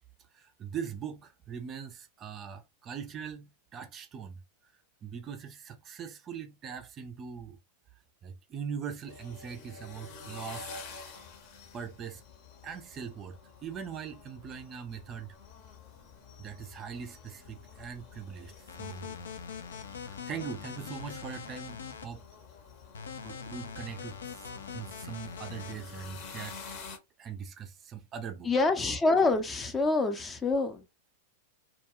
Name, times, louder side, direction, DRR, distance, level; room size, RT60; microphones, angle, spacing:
voice 1, 0.3-4.7 5.0-7.6 8.2-10.8 11.7-12.2 12.6-15.4 16.4-18.5 18.8-19.2 20.1-22.2 23.2-26.6 27.2-28.5, right 7 dB, 30° right, 0.4 m, -41 dB
sound 1, 9.1-27.0, left 4 dB, 50° left, 0.8 m, -49 dB
sound 2, 18.7-22.0 22.9-25.7, left 6 dB, 80° left, 0.4 m, -42 dB
voice 2, 28.4-30.9, left 3 dB, 20° left, 0.5 m, -26 dB
2.3 x 2.1 x 2.9 m
hypercardioid pair, 100°, 0 cm